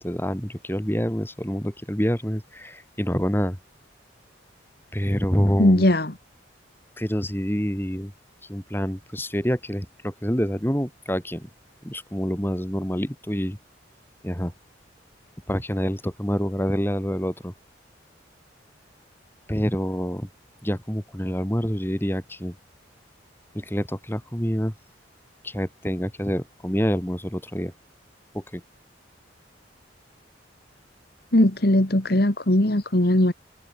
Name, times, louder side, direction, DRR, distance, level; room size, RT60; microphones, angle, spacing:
voice 1, 0.0-3.6 4.9-5.9 7.0-8.1 8.5-11.5 11.8-13.6 14.2-14.5 15.5-17.5 19.5-20.3 20.6-22.6 23.5-24.7 25.4-27.7 28.3-28.6, equal, 10° left, 6.1 m, -27 dB
voice 2, 5.6-6.1 31.3-33.3, left 1 dB, 55° left, 2.1 m, -19 dB
head